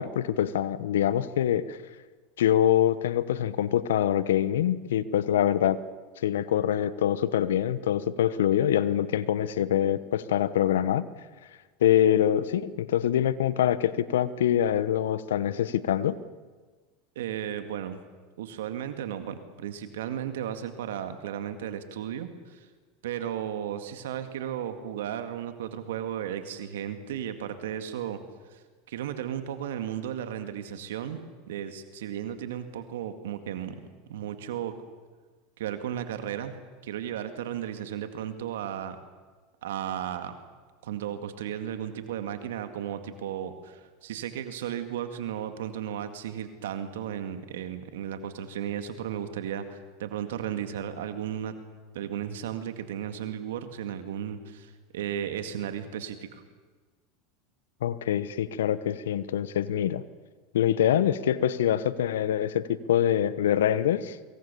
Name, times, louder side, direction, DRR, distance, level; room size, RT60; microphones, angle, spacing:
voice 1, 0.0-1.8 2.4-5.8 6.2-11.1 11.8-16.2 57.8-60.0 60.5-64.2, left 10 dB, 80° left, 16 dB, 1.0 m, -25 dB
voice 2, 17.2-18.0 18.4-22.7 23.0-28.2 28.5-31.2 31.5-33.8 34.1-34.7 35.6-36.6 36.8-39.0 39.6-40.3 40.8-51.5 51.9-56.4, right 10 dB, 75° right, 8 dB, 2.0 m, -34 dB
24.0 x 23.0 x 7.0 m, 1.4 s
hypercardioid pair, 90°, 0 cm